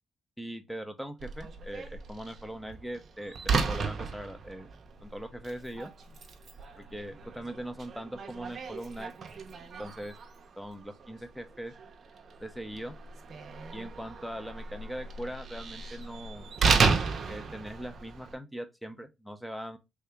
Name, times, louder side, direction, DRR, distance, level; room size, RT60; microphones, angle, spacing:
voice 1, 0.4-4.7 5.0-5.9 6.7-9.1 9.8-10.2 10.6-11.7 12.4-12.9 13.7-16.5 17.3-19.8, right 1 dB, ahead, 0.7 m, -40 dB
Slam, 1.2-18.3, right 4 dB, 50° right, 0.7 m, -34 dB
3.4 x 2.8 x 3.4 m
cardioid pair, 90°, 0 cm